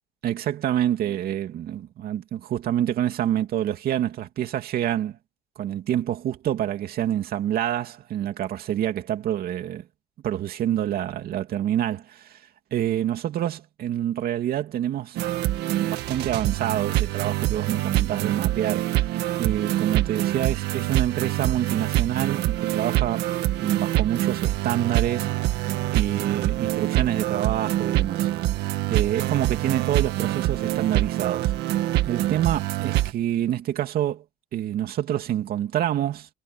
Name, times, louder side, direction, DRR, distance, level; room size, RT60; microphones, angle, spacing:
voice 1, 0.2-5.2 5.6-9.8 10.2-12.4 12.7-15.2 15.8-19.1 19.4-23.3 23.6-25.3 25.9-28.3 28.9-31.5 32.0-34.2 34.5-36.3, right 11 dB, 65° right, 2.6 m, -27 dB
sound 1, 15.1-33.1, right 15 dB, 80° right, 1.8 m, -25 dB
cardioid pair, 110°, 17 cm